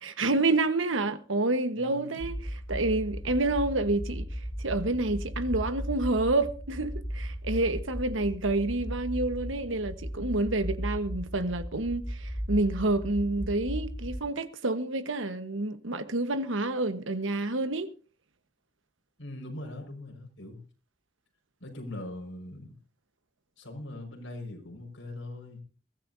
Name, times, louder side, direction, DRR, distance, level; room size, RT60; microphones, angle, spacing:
voice 1, 0.0-4.3 4.6-17.9, right 2 dB, 90° right, 1.3 m, -28 dB
voice 2, 1.7-2.3 19.2-20.6 21.6-22.7 23.6-25.6, left 1 dB, 85° left, 5.4 m, -41 dB
sound 1, 2.2-14.2, equal, 5° left, 1.2 m, -36 dB
22.0 x 14.5 x 2.8 m
head